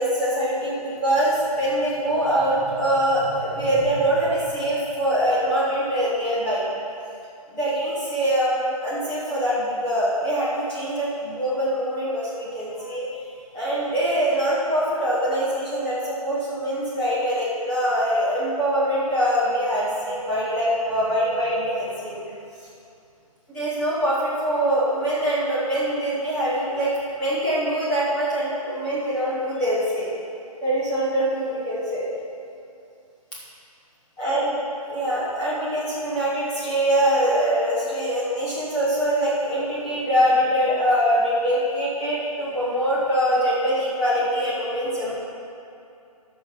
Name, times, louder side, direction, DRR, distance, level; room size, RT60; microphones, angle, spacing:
voice 1, 0.0-6.6 7.5-13.1 13.5-22.2 23.5-26.9 27.1-30.1 30.6-32.0 34.2-34.5 34.9-45.1, equal, 5° left, -10 dB, 0.9 m, -23 dB
13.5 x 5.7 x 4.3 m, 2.6 s
hypercardioid pair, 175°, 20 cm